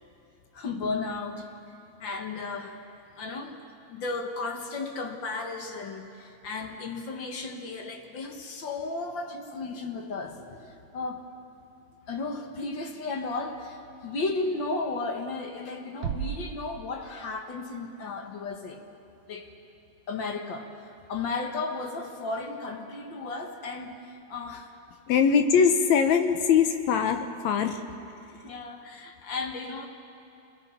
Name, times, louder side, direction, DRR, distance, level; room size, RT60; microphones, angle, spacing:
voice 1, 0.5-1.5 2.0-2.8 3.2-3.6 3.9-11.2 12.1-18.8 19.3-19.5 20.1-24.7 28.4-29.9, left 3 dB, 50° left, 3 dB, 1.6 m, -34 dB
sound 1, 16.0-17.7, right 9 dB, 90° right, 1.2 m, -36 dB
voice 2, 25.1-27.8, left 6 dB, 70° left, 6 dB, 2.1 m, -22 dB
27.5 x 21.5 x 4.4 m, 2.7 s
omnidirectional pair, 3.5 m